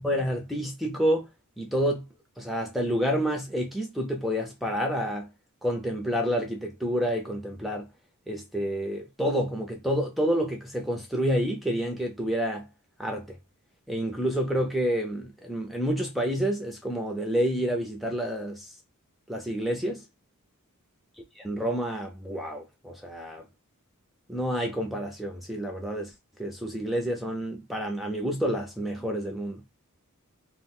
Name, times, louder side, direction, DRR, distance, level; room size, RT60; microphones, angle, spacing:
voice 1, 0.0-1.3 1.6-2.1 2.4-5.3 5.6-7.9 8.3-12.7 13.0-13.4 13.9-18.7 19.3-20.0 21.4-23.4 24.3-26.1 26.4-29.6, equal, ahead, 0.4 m, -29 dB
2.4 x 2.0 x 3.6 m
head